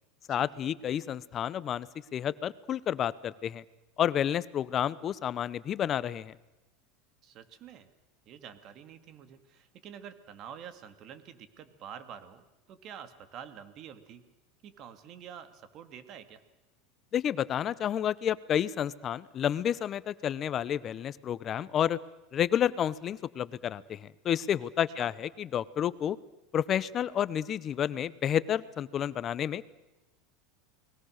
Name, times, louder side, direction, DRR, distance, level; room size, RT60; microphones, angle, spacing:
voice 1, 0.3-1.9 2.1-3.6 4.0-6.3 17.1-22.0 22.3-26.2 26.5-29.7, left 10 dB, 35° left, 18 dB, 0.9 m, -30 dB
voice 2, 7.2-7.9 8.3-14.2 14.6-16.4 25.0-25.1, right 8 dB, 40° right, 10 dB, 2.2 m, -47 dB
29.5 x 20.5 x 6.6 m, 1.0 s
supercardioid pair, 135°, 0 cm